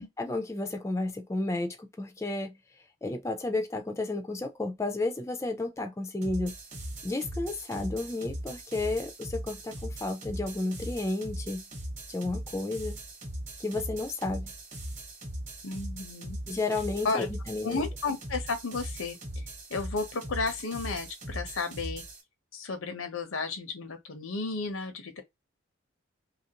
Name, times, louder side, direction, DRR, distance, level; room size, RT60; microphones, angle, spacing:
voice 1, 0.0-2.5 3.0-6.5 7.0-11.6 12.1-13.0 13.6-14.5 16.5-17.8, left 2 dB, 15° left, 0.3 m, -32 dB
sound 1, 6.2-22.2, right 1 dB, 35° right, 0.9 m, -39 dB
voice 2, 15.6-16.4 17.0-17.3 17.6-22.0 22.5-25.2, left 4 dB, 90° left, 0.7 m, -33 dB
2.8 x 2.5 x 2.8 m
head